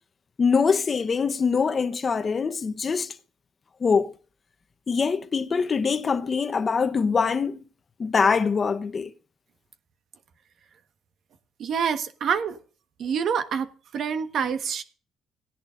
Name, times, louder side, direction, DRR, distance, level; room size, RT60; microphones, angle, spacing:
voice 1, 0.4-3.1 3.8-4.1 4.9-7.6 8.0-9.1, left 5 dB, 40° left, 0.9 m, -23 dB
voice 2, 11.6-12.6 13.0-13.7 13.9-14.8, right 7 dB, 60° right, 1.3 m, -26 dB
17.5 x 10.5 x 2.5 m
cardioid pair, 85°, 0 cm